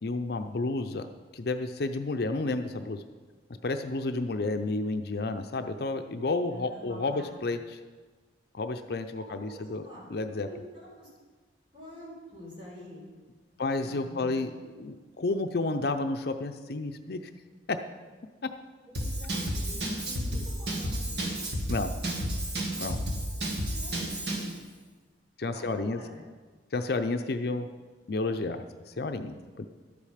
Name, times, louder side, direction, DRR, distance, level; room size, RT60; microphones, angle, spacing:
voice 1, 0.0-1.1 1.3-3.0 3.6-7.8 8.5-9.8 10.1-10.5 13.6-14.5 14.8-17.2 17.7-17.8 21.7-21.9 22.8-23.0 25.4-26.0 26.7-27.7 28.1-28.6 29.0-29.7, left 3 dB, 60° left, 7 dB, 0.5 m, -31 dB
voice 2, 6.5-7.3 9.2-11.1 11.7-13.1 13.5-14.4 18.9-21.3 23.2-23.4 23.7-24.5 25.4-26.2, left 1 dB, 30° right, -6 dB, 4.2 m, -47 dB
Drum kit / Drum, 18.9-24.5, right 1 dB, 65° right, 1.8 m, -32 dB
12.0 x 8.6 x 5.0 m, 1.4 s
head